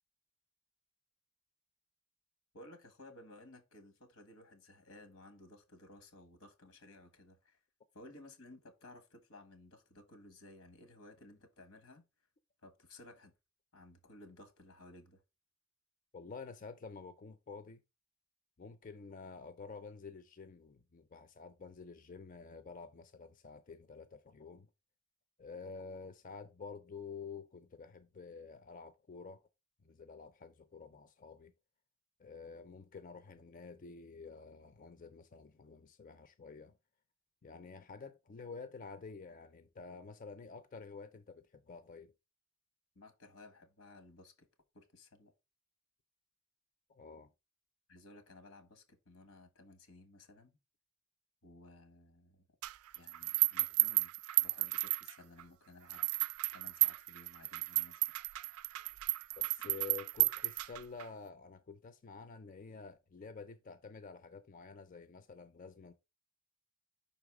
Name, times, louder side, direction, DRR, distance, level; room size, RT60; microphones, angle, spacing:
voice 1, 2.5-7.6 7.9-12.0 12.6-13.3 13.7-15.2 42.9-44.5 44.7-45.3 47.9-50.6 51.4-52.5 52.9-54.1 54.4-56.0 56.5-58.1, left 2 dB, 85° left, 1.5 m, -57 dB
voice 2, 16.1-17.8 18.6-24.7 25.4-29.4 29.8-31.5 32.2-36.8 37.4-42.1 46.9-47.3 59.4-65.9, left 4 dB, 40° left, 0.4 m, -49 dB
sound 1, 52.6-55.4 55.9-61.0, right 20 dB, 85° right, 0.3 m, -33 dB
5.5 x 4.0 x 4.7 m
head